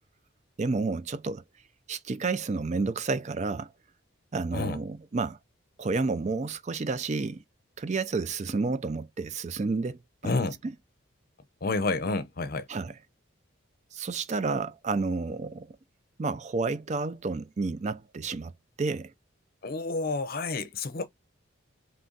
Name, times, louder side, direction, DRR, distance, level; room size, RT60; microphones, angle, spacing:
voice 1, 0.6-1.4 1.9-3.7 4.3-5.4 5.8-7.4 7.8-10.7 12.7-13.0 13.9-15.7 16.2-18.5 18.8-19.1, right 4 dB, 35° right, 0.4 m, -30 dB
voice 2, 10.2-10.5 11.6-12.6 19.6-21.1, left 3 dB, 45° left, 0.6 m, -29 dB
3.8 x 3.3 x 3.8 m
head